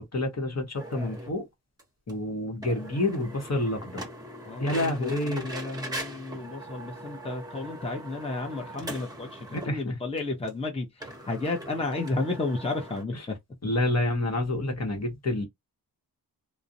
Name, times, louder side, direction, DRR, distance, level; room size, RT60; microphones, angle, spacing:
voice 1, 0.0-1.5 2.1-4.0 4.6-5.5 9.5-10.0 13.6-15.5, left 2 dB, 40° left, 0.9 m, -28 dB
sound 1, 0.7-1.4 1.8-1.9 2.1-2.2 2.6-9.8 10.2-10.3 10.5-10.6 11.0-13.0, right 1 dB, 10° right, 0.9 m, -40 dB
voice 2, 4.4-13.4, left 2 dB, 15° left, 0.7 m, -32 dB
2.4 x 2.0 x 2.7 m
cardioid pair, 55°, 39 cm